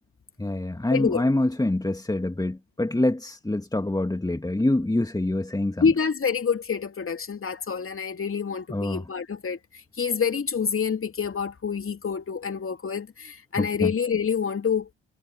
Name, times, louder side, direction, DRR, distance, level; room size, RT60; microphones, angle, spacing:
voice 1, 0.4-5.9 8.7-9.0 13.6-13.9, left 1 dB, 10° left, 2.4 m, -25 dB
voice 2, 0.9-1.2 5.8-9.6 10.0-14.9, left 6 dB, 35° left, 3.0 m, -27 dB
figure-of-eight pair, 40°, 36 cm